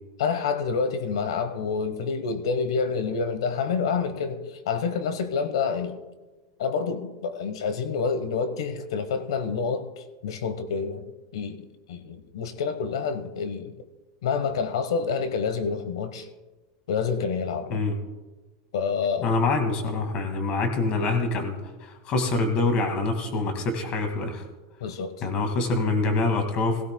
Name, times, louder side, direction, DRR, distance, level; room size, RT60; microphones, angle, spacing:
voice 1, 0.2-6.0 6.6-13.7 14.2-16.3 16.9-17.8 18.7-19.4 24.8-25.1, left 5 dB, 85° left, 1.1 m, -28 dB
voice 2, 19.2-21.6 21.8-24.4 25.2-26.8, left 3 dB, 40° left, 2.0 m, -25 dB
17.0 x 16.0 x 2.2 m
supercardioid pair, 145°, 3 cm